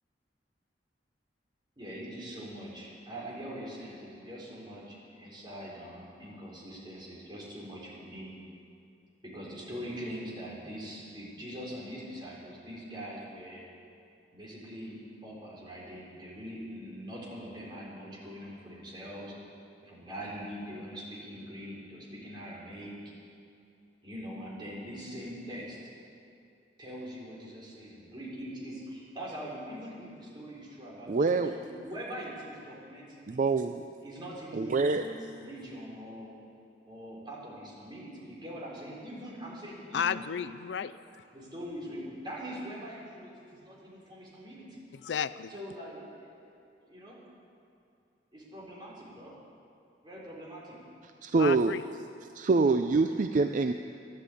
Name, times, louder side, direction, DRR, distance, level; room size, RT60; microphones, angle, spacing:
voice 1, 1.8-8.3 9.2-13.6 14.3-15.0 15.2-19.4 19.8-23.0 24.0-25.9 26.8-33.4 34.0-36.3 36.9-40.6 41.3-44.8 45.5-46.5 46.8-47.2 48.3-49.3 50.0-50.8, equal, 25° right, -5 dB, 4.1 m, -43 dB
voice 2, 31.1-31.6 33.3-33.9 34.5-35.1 51.2-51.7 52.3-53.7, right 3 dB, 45° right, 7 dB, 0.4 m, -25 dB
voice 3, 39.9-41.2 44.9-45.5 51.4-51.8, left 7 dB, 80° left, 14 dB, 0.4 m, -33 dB
13.5 x 11.5 x 8.4 m, 2.5 s
head